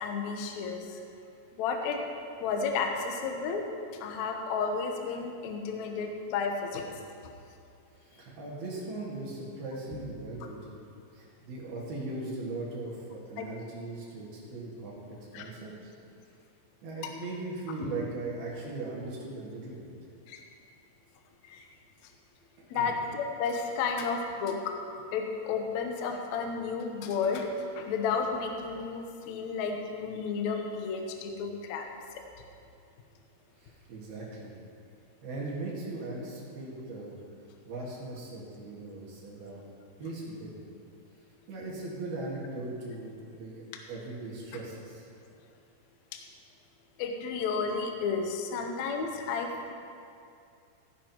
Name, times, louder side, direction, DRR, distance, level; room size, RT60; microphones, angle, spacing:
voice 1, 0.0-1.0 1.5-2.0 2.4-3.6 4.0-6.9 13.4-13.5 15.3-15.5 20.3-20.4 21.5-21.7 22.7-24.7 25.1-27.5 27.7-31.9 46.1-46.2 47.0-49.7, left 5 dB, 80° left, 3 dB, 1.6 m, -32 dB
voice 2, 7.9-10.8 11.1-15.9 16.8-19.9 22.7-23.0 33.6-34.5 35.2-37.2 37.6-39.6 40.0-40.6 41.5-43.6 43.9-45.1, right 2 dB, 70° right, -5 dB, 3.6 m, -39 dB
16.0 x 11.0 x 3.0 m, 2.4 s
omnidirectional pair, 4.6 m